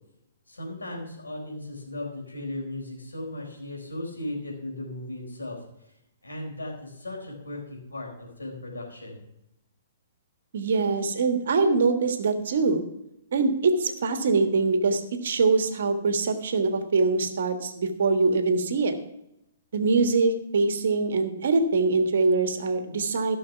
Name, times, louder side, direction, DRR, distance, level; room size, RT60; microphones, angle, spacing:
voice 1, 0.5-5.6 6.2-9.2, left 1 dB, 75° left, 0 dB, 4.4 m, -36 dB
voice 2, 10.5-12.8 13.3-18.9 19.7-23.4, right 3 dB, 55° right, 7 dB, 1.5 m, -23 dB
15.5 x 6.5 x 5.8 m, 0.84 s
figure-of-eight pair, 115°, 0 cm